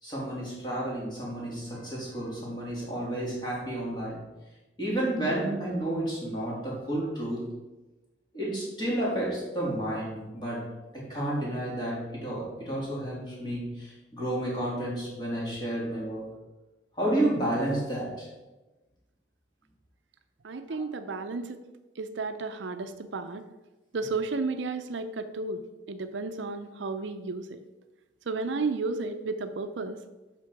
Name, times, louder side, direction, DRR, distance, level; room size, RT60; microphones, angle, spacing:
voice 1, 0.0-4.2 4.8-7.5 8.3-10.7 10.9-16.2 16.9-18.3 20.7-20.8, right 1 dB, 25° left, -5 dB, 2.7 m, -31 dB
voice 2, 20.4-21.6 22.0-23.4 23.9-25.6 25.9-27.6 28.3-30.0, right 3 dB, 70° right, 9 dB, 0.6 m, -33 dB
8.2 x 5.9 x 4.7 m, 1.1 s
head